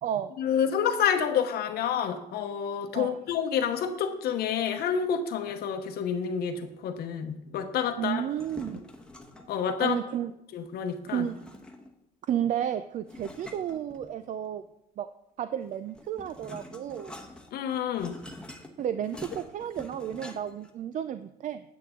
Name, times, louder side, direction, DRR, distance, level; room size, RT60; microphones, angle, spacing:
voice 1, 0.4-8.2 9.5-9.9 10.5-11.3 17.5-18.2, left 8 dB, 70° left, 6 dB, 0.9 m, -28 dB
voice 2, 8.0-8.8 9.8-10.3 11.1-11.4 12.2-14.6 15.0-15.1 15.4-17.2 18.8-21.6, right 10 dB, 50° right, 11 dB, 0.4 m, -32 dB
sound 1, 8.2-9.6 11.1-12.0 13.1-14.5 15.6-20.7, left 1 dB, 5° left, 1.0 m, -46 dB
9.0 x 8.5 x 3.7 m, 0.82 s
cardioid pair, 110°, 17 cm